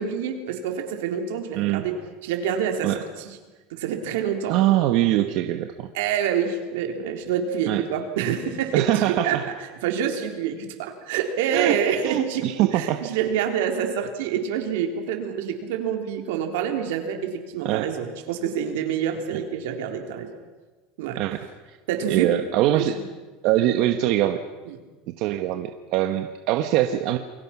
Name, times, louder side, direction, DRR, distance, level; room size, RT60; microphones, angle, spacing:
voice 1, 0.0-2.0 2.2-3.4 3.7-4.6 5.9-9.4 9.8-20.3 21.0-21.2 21.9-22.3 22.7-23.0 24.7-24.8, right 8 dB, 75° right, 4 dB, 3.7 m, -27 dB
voice 2, 1.5-1.9 2.8-3.0 4.5-5.9 7.7-7.8 8.7-9.4 11.5-11.8 12.0-13.0 17.6-17.9 19.3-19.4 21.1-21.4 21.7-21.8 22.1-23.0 23.4-24.4 25.1-27.2, right 13 dB, 50° right, 7 dB, 1.1 m, -23 dB
29.0 x 22.0 x 6.0 m, 1.3 s
supercardioid pair, 170°, 0 cm